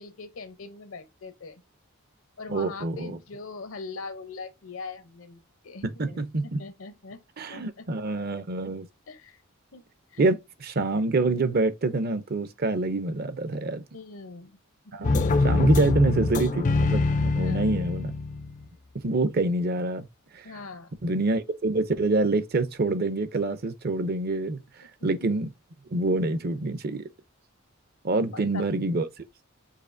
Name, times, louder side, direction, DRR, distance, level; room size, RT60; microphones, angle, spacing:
voice 1, 0.0-1.6 2.4-6.2 6.6-7.2 7.5-7.6 9.1-9.4 9.7-9.8 10.1-10.2 13.9-14.6 14.9-15.2 17.3-17.7 20.4-20.9 25.0-25.1 28.1-28.7, left 4 dB, 65° left, 0.8 m, -41 dB
voice 2, 2.5-3.2 5.8-6.6 7.4-8.9 10.2-13.8 14.9-18.1 19.0-20.1 20.3-20.4 21.0-24.6 25.0-25.5 25.9-27.1 28.0-29.1, right 2 dB, 45° right, 0.6 m, -26 dB
sound 1, 15.0-18.7, left 3 dB, 35° left, 0.4 m, -24 dB
6.6 x 2.8 x 2.6 m
head